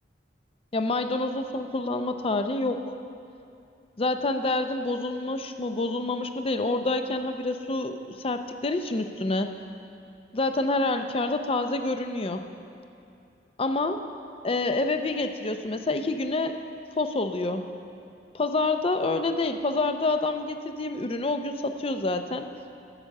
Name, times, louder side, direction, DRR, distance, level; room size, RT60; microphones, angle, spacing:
voice 1, 0.7-2.9 4.0-9.5 10.3-12.4 13.6-14.0 14.4-16.6 16.9-17.7 18.3-22.5, left 2 dB, 30° left, 8 dB, 0.5 m, -27 dB
10.0 x 6.6 x 7.4 m, 2.5 s
head